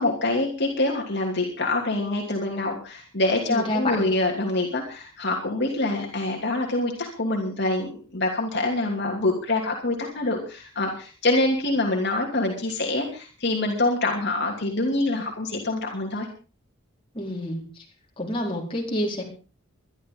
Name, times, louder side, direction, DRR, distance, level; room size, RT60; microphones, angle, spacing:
voice 1, 0.0-16.3, left 2 dB, 50° left, 0 dB, 2.8 m, -25 dB
voice 2, 3.5-4.1 17.1-17.6 18.2-19.2, left 1 dB, 25° left, -2 dB, 4.6 m, -28 dB
23.0 x 12.0 x 3.9 m, 0.36 s
head